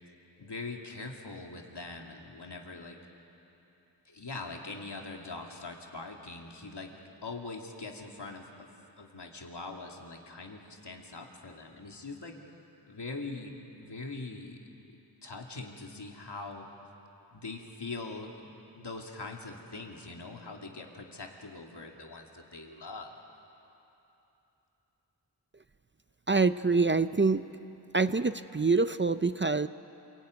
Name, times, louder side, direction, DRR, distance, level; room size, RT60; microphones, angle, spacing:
voice 1, 0.4-3.0 4.0-6.9 7.2-8.7 9.0-12.3 12.9-14.6 14.8-16.7 17.3-23.1, left 3 dB, 75° left, 1 dB, 2.6 m, -42 dB
voice 2, 26.3-27.4 27.9-29.7, right 4 dB, 30° right, 12 dB, 0.5 m, -25 dB
27.5 x 18.0 x 9.5 m, 3.0 s
wide cardioid pair, 65°, 41 cm